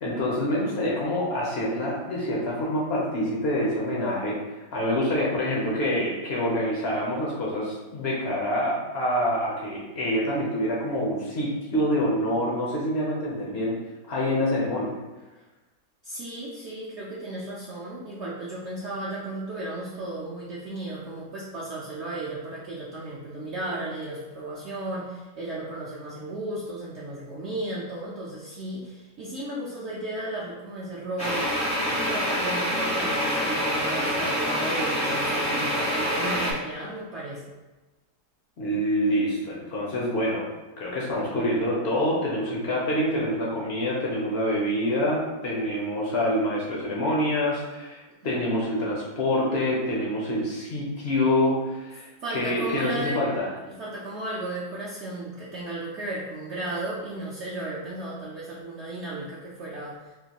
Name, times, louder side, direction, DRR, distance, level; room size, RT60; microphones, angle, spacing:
voice 1, 0.0-4.4 4.7-13.7 14.1-14.9 38.6-40.5 40.8-53.5, left 1 dB, 70° left, -4 dB, 0.6 m, -26 dB
voice 2, 16.0-31.5 32.1-37.5 52.2-53.2 53.7-60.1, right 1 dB, 75° right, -7 dB, 0.6 m, -34 dB
sound 1, 31.2-36.5, equal, 10° left, 0.4 m, -26 dB
3.7 x 2.5 x 2.8 m, 1.1 s
omnidirectional pair, 1.9 m